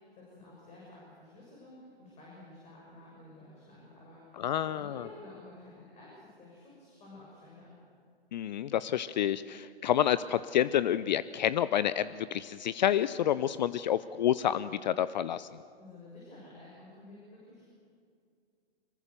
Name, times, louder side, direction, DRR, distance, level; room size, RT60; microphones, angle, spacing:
voice 1, 0.0-7.7 15.8-17.7, left 2 dB, 20° left, -5 dB, 6.9 m, -52 dB
voice 2, 4.4-5.1 8.3-15.5, left 10 dB, 45° left, 16 dB, 0.6 m, -29 dB
25.5 x 22.5 x 6.8 m, 2.3 s
figure-of-eight pair, 120°, 31 cm